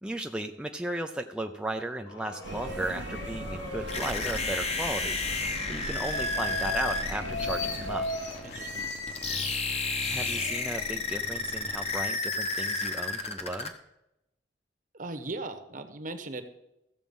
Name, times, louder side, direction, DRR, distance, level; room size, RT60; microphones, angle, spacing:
voice 1, 0.0-5.2 5.7-8.1 10.1-13.7, right 1 dB, 5° right, 4 dB, 0.5 m, -35 dB
sound 1, 2.1-5.1 5.7-9.6 10.0-10.8, left 2 dB, 80° left, 2.8 m, -38 dB
sound 2, 2.4-8.0, right 2 dB, 70° right, 0.9 m, -40 dB
sound 3, 3.9-13.7, left 3 dB, 35° left, 1.1 m, -32 dB
voice 2, 8.4-8.9 14.9-16.4, right 2 dB, 45° right, 8 dB, 1.1 m, -38 dB
14.5 x 7.4 x 5.4 m, 0.88 s
head